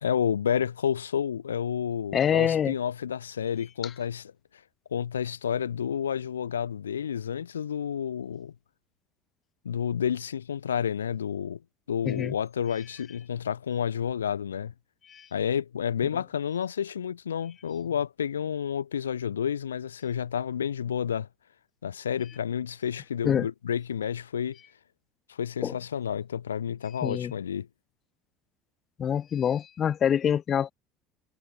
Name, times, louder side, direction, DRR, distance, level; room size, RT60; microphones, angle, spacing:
voice 1, 0.0-4.2 4.9-8.5 9.6-11.6 11.9-14.7 15.3-21.3 21.8-24.6 25.3-27.7, left 8 dB, 75° left, 3.2 m, -30 dB
voice 2, 2.1-2.7 12.0-12.3 15.1-15.3 23.2-23.5 25.6-25.8 27.0-27.3 29.0-30.7, left 8 dB, 35° left, 6.1 m, -25 dB
figure-of-eight pair, 65°, 0 cm